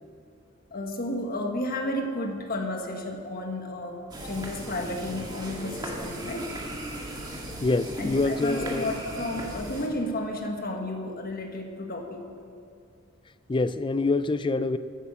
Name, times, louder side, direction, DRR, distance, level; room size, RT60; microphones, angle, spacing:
voice 1, 0.7-4.0 4.2-6.6 8.0-12.3, left 1 dB, 45° left, 3 dB, 1.5 m, -32 dB
sound 1, 4.1-9.9, right 1 dB, 20° right, 1.8 m, -37 dB
voice 2, 7.6-8.9 13.5-14.8, left 3 dB, 25° left, 14 dB, 0.4 m, -25 dB
14.5 x 9.0 x 6.9 m, 2.4 s
head